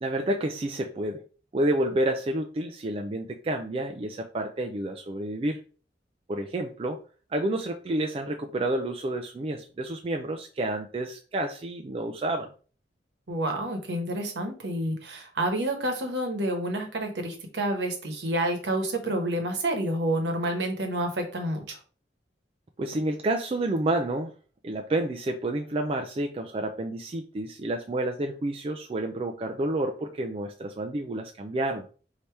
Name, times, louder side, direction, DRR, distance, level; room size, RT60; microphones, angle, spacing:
voice 1, 0.0-1.2 1.5-5.6 6.3-7.0 7.3-12.5 22.8-24.3 24.6-31.9, right 1 dB, 30° right, 3 dB, 0.3 m, -29 dB
voice 2, 13.3-21.8, right 1 dB, 70° right, 4 dB, 1.1 m, -29 dB
3.3 x 2.8 x 4.5 m, 0.38 s
head